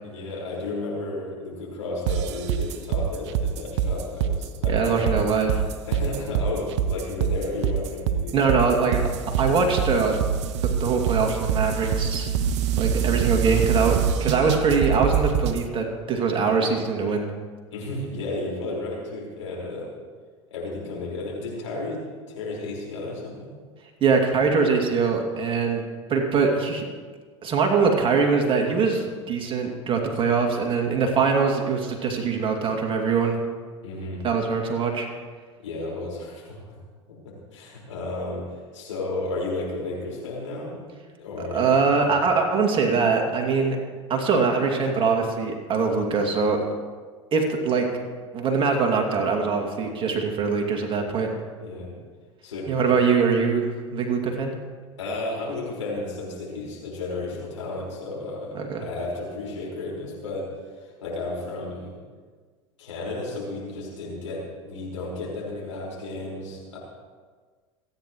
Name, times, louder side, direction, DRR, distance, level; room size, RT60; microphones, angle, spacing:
voice 1, 0.0-5.2 5.8-8.4 17.7-19.9 20.5-22.0 22.3-23.5 33.8-34.2 35.6-36.7 37.2-40.9 41.2-42.1 51.6-51.9 52.4-52.8 55.0-60.4 60.7-61.9 62.8-66.8, left 2 dB, 80° left, -4 dB, 5.0 m, -33 dB
sound 1, 2.1-15.6, right 8 dB, 65° right, 0.9 m, -25 dB
voice 2, 4.7-5.7 8.3-9.0 9.4-10.1 10.6-12.3 12.8-17.3 24.0-25.8 26.1-26.8 27.4-33.4 34.2-35.1 41.5-43.8 44.1-46.6 47.3-47.9 48.3-51.3 52.7-54.5 58.5-58.8, right 5 dB, 35° right, 2 dB, 2.4 m, -23 dB
28.0 x 9.9 x 3.1 m, 1.5 s
hypercardioid pair, 80°, 16 cm